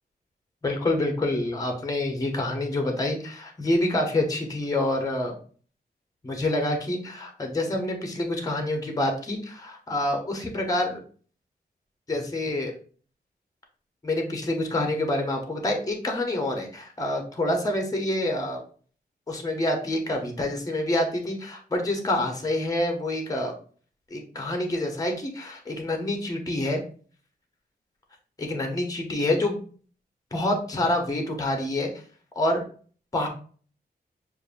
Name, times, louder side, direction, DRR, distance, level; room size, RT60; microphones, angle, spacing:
voice 1, 0.6-5.3 6.2-11.0 12.1-12.7 14.0-18.6 19.3-23.5 24.1-26.8 28.4-29.6 30.3-31.9 32.4-32.6 33.1-33.3, left 1 dB, 20° left, 3 dB, 0.8 m, -27 dB
6.4 x 2.6 x 2.5 m, 0.42 s
wide cardioid pair, 175°, 16 cm